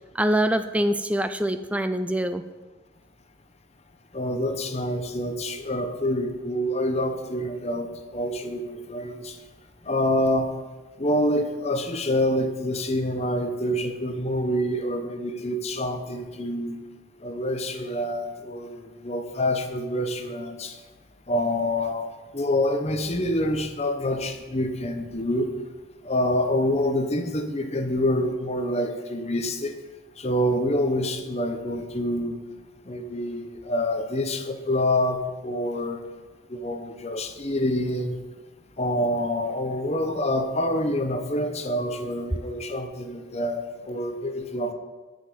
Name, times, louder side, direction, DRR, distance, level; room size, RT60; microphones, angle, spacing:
voice 1, 0.0-2.4, right 1 dB, 5° right, 10 dB, 0.3 m, -24 dB
voice 2, 4.1-9.4 9.9-10.5 11.0-16.8 17.2-18.8 19.0-20.7 21.3-25.5 26.0-29.8 30.2-32.4 32.9-35.2 35.4-36.1 36.5-38.2 38.8-44.7, left 1 dB, 30° left, 7 dB, 0.8 m, -26 dB
10.0 x 5.3 x 7.7 m, 1.2 s
head